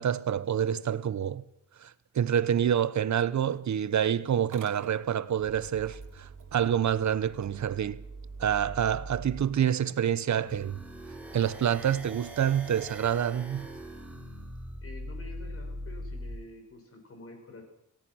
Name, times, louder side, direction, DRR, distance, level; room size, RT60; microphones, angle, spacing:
voice 1, 0.0-1.4 1.8-8.0 8.4-10.8 11.3-13.7, right 9 dB, 65° right, 0.9 m, -27 dB
Motor vehicle (road) / Engine starting, 4.4-9.4, right 4 dB, 85° right, 2.9 m, -44 dB
sound 1, 10.5-16.4, equal, 5° right, 4.1 m, -41 dB
voice 2, 14.8-17.6, left 2 dB, 45° left, 6.3 m, -48 dB
28.0 x 18.0 x 6.3 m
wide cardioid pair, 170°, 31 cm